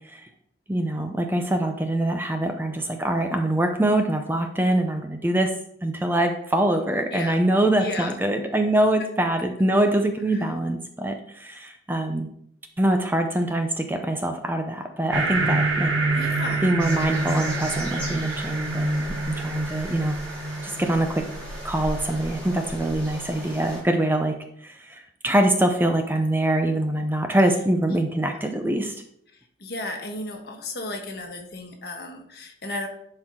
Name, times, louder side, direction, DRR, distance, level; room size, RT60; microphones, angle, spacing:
voice 1, 0.7-5.6 5.8-12.3 12.8-16.2 16.6-20.1 20.6-21.3 21.6-24.3 24.6-28.9, right 1 dB, 10° right, 5 dB, 0.5 m, -24 dB
voice 2, 7.8-8.1 10.3-10.4 16.1-16.8 29.6-32.9, left 2 dB, 55° left, 2 dB, 1.4 m, -34 dB
sound 1, 15.1-24.1, right 3 dB, 75° right, 1.5 m, -28 dB
sound 2, 16.8-23.8, equal, 10° left, 2.4 m, -38 dB
11.0 x 4.5 x 3.8 m, 0.71 s
head